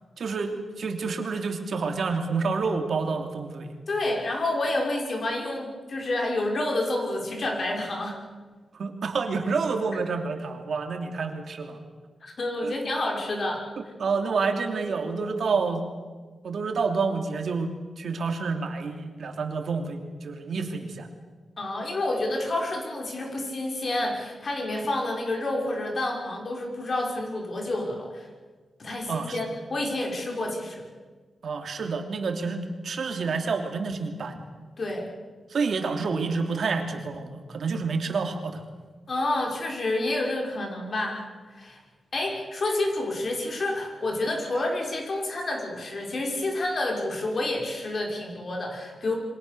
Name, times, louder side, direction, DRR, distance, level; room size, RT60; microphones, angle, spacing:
voice 1, 0.2-3.7 8.8-11.8 12.6-12.7 14.0-15.8 16.4-21.1 29.1-29.4 31.4-34.4 35.5-38.6, right 4 dB, 70° right, 4 dB, 3.0 m, -28 dB
voice 2, 3.9-8.2 12.2-13.6 21.6-28.3 28.8-30.9 34.8-35.1 39.1-41.2 41.5-41.8 42.1-49.2, left 2 dB, 45° left, 1 dB, 6.0 m, -29 dB
28.5 x 24.5 x 7.0 m, 1.4 s
wide cardioid pair, 140°, 0 cm